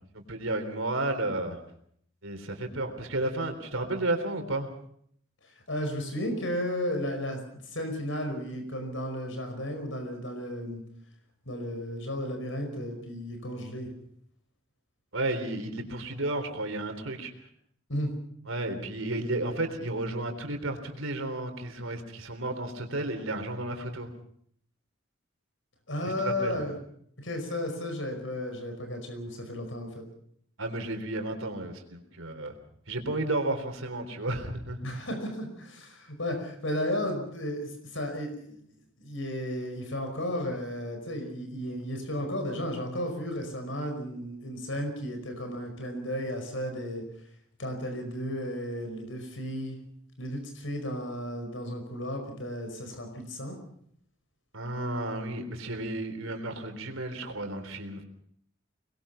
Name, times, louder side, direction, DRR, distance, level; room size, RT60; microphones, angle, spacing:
voice 1, 0.1-1.6 2.2-4.7 15.1-17.3 18.5-24.1 26.0-26.6 30.6-32.5 32.9-34.8 54.5-58.0, right 2 dB, 80° right, 5 dB, 3.8 m, -32 dB
voice 2, 5.7-10.8 11.5-13.9 17.9-18.1 25.9-26.8 27.2-30.0 34.8-38.6 39.0-47.1 47.6-49.8 50.2-53.6, left 1 dB, 70° left, 5 dB, 5.3 m, -34 dB
24.5 x 21.0 x 5.7 m, 0.66 s
head